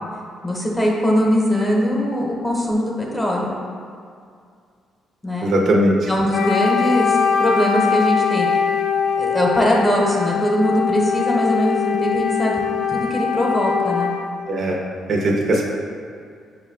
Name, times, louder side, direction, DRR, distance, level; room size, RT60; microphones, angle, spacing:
voice 1, 0.4-3.6 5.2-5.5 6.1-8.6 9.2-12.6 12.9-14.1, left 1 dB, 10° left, -3 dB, 0.9 m, -21 dB
voice 2, 5.4-6.1 14.5-14.8 15.1-15.6, right 1 dB, 60° right, -1 dB, 0.6 m, -19 dB
Wind instrument woodwind instrument, 6.3-14.3, left 6 dB, 65° left, 0.4 m, -22 dB
6.1 x 2.2 x 3.6 m, 2.2 s
cardioid pair, 90°, 0 cm